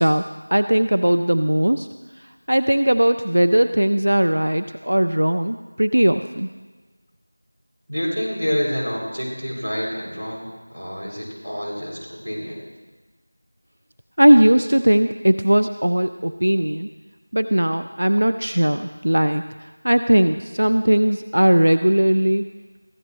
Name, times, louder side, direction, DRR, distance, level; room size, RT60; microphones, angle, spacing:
voice 1, 0.0-1.9 2.2-6.5 14.2-16.9 17.3-22.4, right 1 dB, 55° right, 9 dB, 0.5 m, -18 dB
voice 2, 7.9-10.4 10.7-12.6, equal, 10° right, -14 dB, 5.3 m, -27 dB
24.0 x 16.5 x 3.2 m, 1.3 s
figure-of-eight pair, 180°, 0 cm